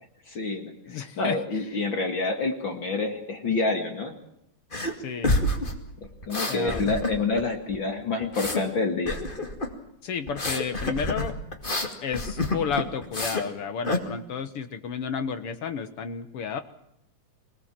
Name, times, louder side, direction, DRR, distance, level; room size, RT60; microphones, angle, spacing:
voice 1, 0.3-4.1 6.3-9.2, left 3 dB, 40° left, 5 dB, 2.2 m, -28 dB
voice 2, 0.9-1.7 5.0-5.3 6.5-7.0 10.0-11.3 12.0-16.6, left 6 dB, 65° left, 10 dB, 1.5 m, -32 dB
sound 1, 4.7-4.9 5.2-7.4 7.7-8.6 9.0-9.7 10.3-13.5 13.8-14.0, left 1 dB, 20° left, 1.8 m, -28 dB
25.0 x 19.0 x 7.5 m, 0.76 s
omnidirectional pair, 4.1 m